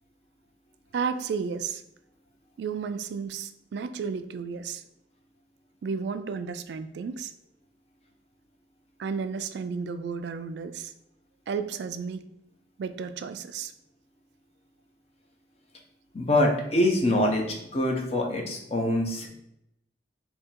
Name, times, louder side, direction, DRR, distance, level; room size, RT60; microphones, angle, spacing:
voice 1, 0.9-1.8 2.6-4.8 5.8-7.3 9.0-10.9 11.5-12.3 12.8-13.7, right 5 dB, 70° right, 11 dB, 0.3 m, -32 dB
voice 2, 16.1-19.3, left 1 dB, 35° left, 1 dB, 0.7 m, -24 dB
3.7 x 2.8 x 4.3 m, 0.80 s
head